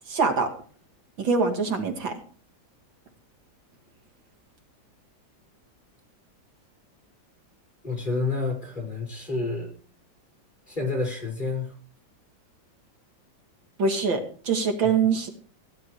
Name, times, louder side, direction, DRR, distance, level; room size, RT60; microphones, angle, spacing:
voice 1, 0.1-0.5 1.2-2.1 13.8-15.3, right 5 dB, 85° right, 4 dB, 3.2 m, -24 dB
voice 2, 7.8-9.7 10.7-11.7, left 3 dB, 25° left, 0 dB, 5.9 m, -29 dB
16.5 x 11.0 x 4.9 m, 0.42 s
omnidirectional pair, 2.0 m